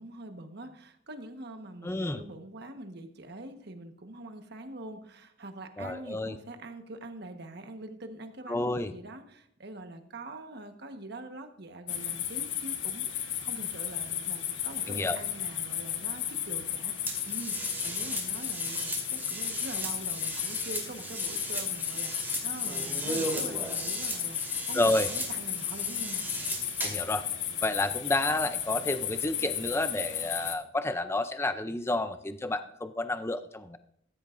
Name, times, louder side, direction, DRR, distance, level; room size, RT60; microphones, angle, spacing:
voice 1, 0.0-26.2, right 2 dB, 55° right, 6 dB, 1.3 m, -44 dB
voice 2, 1.8-2.2 5.8-6.4 8.5-8.9 14.9-15.2 24.7-25.1 26.8-27.3 27.6-33.8, left 2 dB, 15° left, 10 dB, 0.5 m, -30 dB
sound 1, 11.9-30.5, left 10 dB, 70° left, 1.3 m, -34 dB
sound 2, 17.1-27.1, right 2 dB, 10° right, 2.3 m, -37 dB
15.5 x 13.5 x 2.6 m, 0.69 s
head